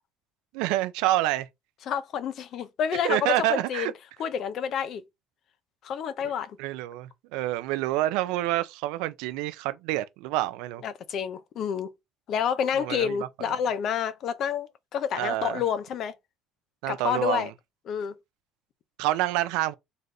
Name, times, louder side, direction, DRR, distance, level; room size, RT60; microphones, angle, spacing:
voice 1, 0.5-1.5 3.0-3.9 6.6-10.8 12.8-13.2 15.1-15.6 16.8-17.5 19.0-19.7, right 16 dB, 85° right, 0.5 m, -27 dB
voice 2, 1.9-3.9 4.2-5.0 5.8-6.6 10.8-11.9 12.3-16.1 16.9-17.5 17.9-18.1, left 8 dB, 55° left, 0.6 m, -29 dB
3.8 x 3.3 x 2.7 m
cardioid pair, 105°, 0 cm